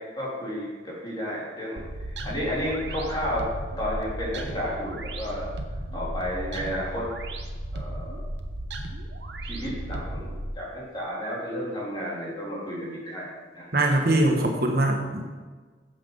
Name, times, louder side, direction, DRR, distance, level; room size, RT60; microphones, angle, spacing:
voice 1, 0.2-1.8 2.2-3.4 3.8-5.6 5.9-7.1 7.7-8.2 9.4-10.3 10.6-13.3 13.5-13.7, equal, 25° left, -6 dB, 3.4 m, -32 dB
sound 1, 1.8-10.5, right 1 dB, 75° right, 0.9 m, -35 dB
voice 2, 13.7-15.3, right 1 dB, 55° right, 2 dB, 1.1 m, -22 dB
8.8 x 7.2 x 5.4 m, 1.4 s
head